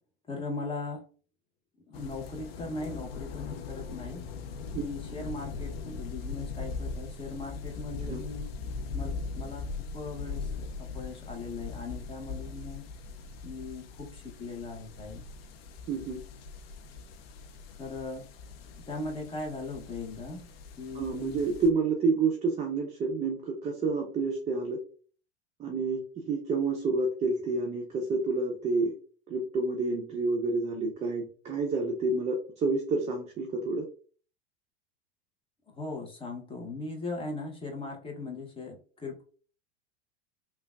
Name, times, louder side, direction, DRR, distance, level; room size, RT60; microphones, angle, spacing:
voice 1, 0.3-1.0 1.9-4.2 4.7-8.5 8.9-9.7 9.9-12.8 13.4-15.2 17.8-18.3 18.9-20.5 20.8-21.4 35.8-39.2, left 3 dB, 15° left, 1 dB, 0.8 m, -39 dB
sound 1, 1.9-21.7, left 4 dB, 65° left, 0.5 m, -40 dB
voice 2, 15.9-16.2 20.9-24.8 25.6-28.9 29.3-33.8, right 3 dB, 20° right, 1 dB, 0.5 m, -29 dB
3.2 x 2.3 x 2.3 m, 0.41 s
hypercardioid pair, 85°, 32 cm